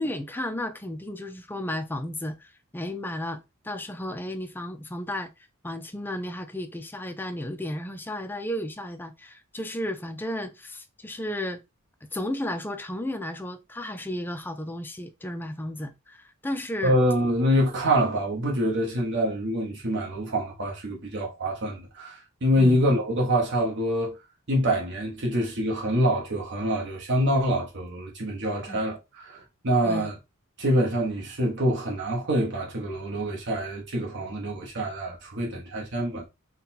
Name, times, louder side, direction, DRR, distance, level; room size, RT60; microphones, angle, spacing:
voice 1, 0.0-5.3 5.6-11.6 12.1-17.0 22.6-22.8 28.7-28.8 29.8-30.1, left 1 dB, 10° left, 0.4 m, -33 dB
voice 2, 16.8-24.2 24.5-30.1 30.6-36.3, equal, 55° right, 1.2 m, -25 dB
4.0 x 2.3 x 4.1 m
head